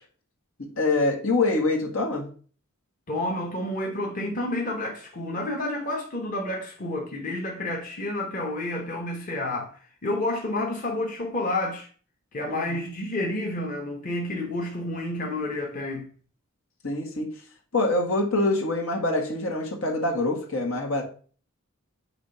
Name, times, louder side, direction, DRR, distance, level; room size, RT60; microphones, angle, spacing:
voice 1, 0.6-2.3 12.5-12.8 16.8-17.3 17.7-21.0, left 2 dB, 80° left, 1.7 m, -25 dB
voice 2, 3.1-9.7 10.0-11.9 12.3-16.1, left 1 dB, 40° left, 1.1 m, -30 dB
5.9 x 3.5 x 5.6 m
head